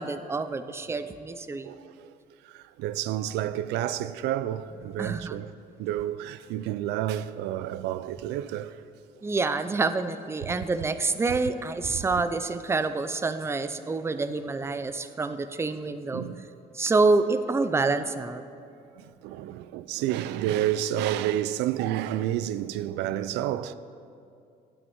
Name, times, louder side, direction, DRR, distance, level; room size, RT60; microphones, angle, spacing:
voice 1, 0.0-1.7 5.0-5.4 9.2-16.2 16.7-18.4, right 3 dB, 15° right, 0.5 m, -27 dB
voice 2, 1.6-2.1 2.4-5.5 5.8-8.8 16.1-16.5 19.0-23.7, right 12 dB, 90° right, 0.4 m, -30 dB
9.6 x 8.0 x 7.8 m
cardioid pair, 110°, 17 cm